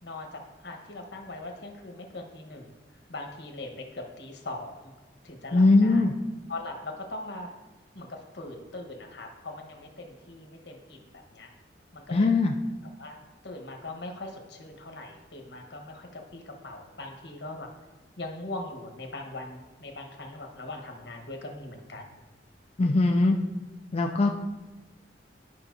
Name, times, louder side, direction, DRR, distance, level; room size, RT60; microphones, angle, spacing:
voice 1, 0.0-2.7 3.1-4.9 5.2-6.1 6.5-7.5 7.9-11.5 11.9-12.3 13.0-17.7 18.2-22.1, left 2 dB, 80° left, 2 dB, 1.2 m, -40 dB
voice 2, 5.5-6.1 12.1-12.5 22.8-23.4 23.9-24.4, left 3 dB, 35° left, 2 dB, 0.4 m, -21 dB
11.5 x 5.4 x 2.7 m, 1.2 s
head